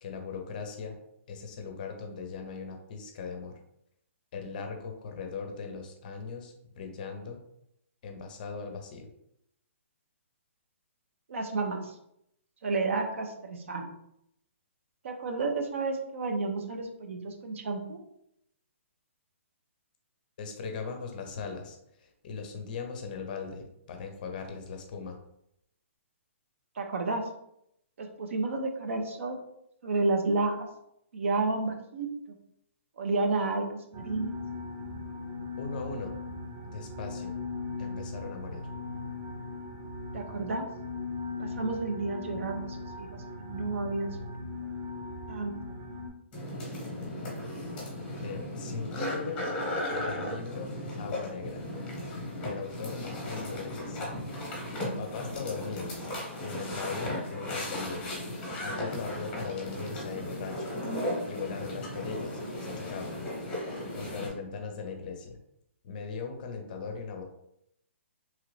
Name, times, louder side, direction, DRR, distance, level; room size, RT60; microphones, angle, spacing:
voice 1, 0.0-1.0 1.3-3.5 4.3-7.4 8.0-9.1 20.4-25.2 35.6-36.2 36.6-37.4 37.8-38.7 48.2-49.4 49.9-51.7 52.4-54.0 55.0-55.9 56.4-58.2 58.6-60.7 61.3-63.2 63.9-65.4 65.8-67.2, left 5 dB, 40° left, 4 dB, 0.5 m, -39 dB
voice 2, 11.3-12.0 12.6-13.9 15.0-18.0 26.8-27.3 28.0-29.4 29.8-30.7 31.1-32.4 33.0-34.3 40.1-40.6 41.4-44.2 44.6-44.7 45.3-45.5, right 3 dB, 65° right, 5 dB, 0.6 m, -31 dB
sound 1, 33.9-46.1, left 3 dB, 20° right, 0.3 m, -39 dB
sound 2, 46.3-64.3, left 1 dB, 15° left, 0.9 m, -36 dB
3.0 x 2.4 x 3.1 m, 0.77 s
hypercardioid pair, 165°, 7 cm